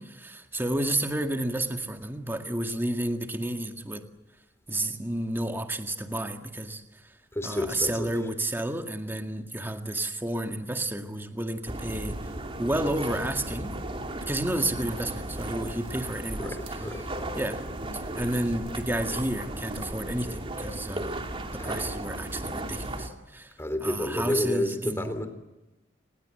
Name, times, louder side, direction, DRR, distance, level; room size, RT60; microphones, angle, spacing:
voice 1, 0.0-4.1 4.7-7.1 7.4-13.8 14.2-16.6 17.4-17.6 18.1-21.3 21.5-23.5 23.8-25.2, right 1 dB, 10° right, 5 dB, 2.0 m, -31 dB
voice 2, 7.3-8.1 16.4-17.3 21.6-21.8 23.6-25.3, left 1 dB, 15° left, 8 dB, 3.3 m, -30 dB
sound 1, 11.7-23.1, right 1 dB, 30° right, 2.7 m, -35 dB
29.5 x 20.5 x 7.9 m, 1.0 s
head